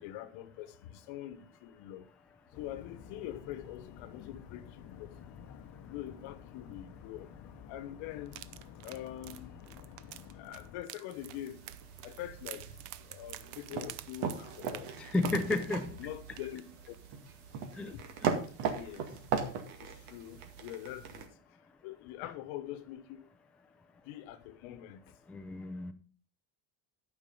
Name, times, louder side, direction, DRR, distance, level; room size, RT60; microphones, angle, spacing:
voice 1, 0.0-2.1 2.6-5.1 5.8-7.3 7.7-8.4 8.8-9.6 10.4-11.6 12.0-12.7 13.1-14.9 16.0-16.6 16.9-17.0 17.9-18.0 18.7-19.1 19.8-21.3 21.8-23.3 24.1-25.0, left 12 dB, 70° left, 1.2 m, -44 dB
sound 1, 2.5-10.8, left 8 dB, 45° left, 1.1 m, -51 dB
sound 2, 8.3-16.1 16.4-16.6 16.9-17.0, right 14 dB, 55° right, 0.7 m, -49 dB
sound 3, 11.1-21.3, right 6 dB, 90° right, 2.1 m, -39 dB
voice 2, 15.0-15.9 17.8-17.9 18.2-18.3 25.3-25.9, left 3 dB, ahead, 0.4 m, -32 dB
12.0 x 5.6 x 5.4 m
cardioid pair, 150°, 50 cm